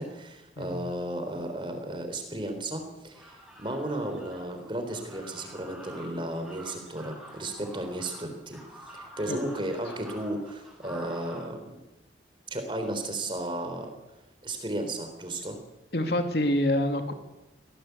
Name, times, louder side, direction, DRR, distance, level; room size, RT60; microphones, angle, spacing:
voice 1, 0.0-3.3 3.6-8.6 8.9-11.8 12.5-13.9 14.4-15.6, right 1 dB, 25° right, 6 dB, 3.9 m, -34 dB
sound 1, 3.1-11.4, right 1 dB, 5° right, 7.1 m, -48 dB
voice 2, 15.9-17.1, left 1 dB, 60° left, 6 dB, 2.7 m, -26 dB
24.5 x 18.5 x 8.3 m, 1.0 s
head